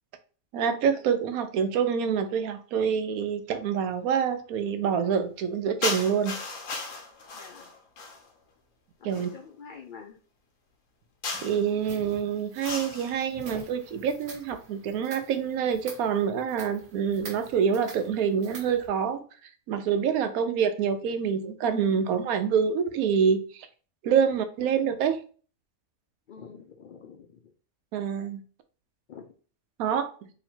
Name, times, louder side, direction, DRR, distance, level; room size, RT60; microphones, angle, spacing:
voice 1, 0.5-6.4 9.0-9.3 11.3-19.2 19.7-23.7 24.0-25.2 27.9-28.4 29.8-30.1, right 7 dB, 85° right, 1.1 m, -26 dB
sound 1, 5.8-8.3 9.1-9.4 11.2-11.7 12.6-13.2, left 3 dB, 65° left, 1.2 m, -35 dB
voice 2, 7.4-7.7 9.0-10.2 20.2-20.6 26.3-27.5 29.1-29.3, left 6 dB, 85° left, 0.4 m, -47 dB
sound 2, 11.4-18.9, right 2 dB, 60° right, 1.3 m, -47 dB
3.1 x 2.8 x 4.3 m
omnidirectional pair, 1.5 m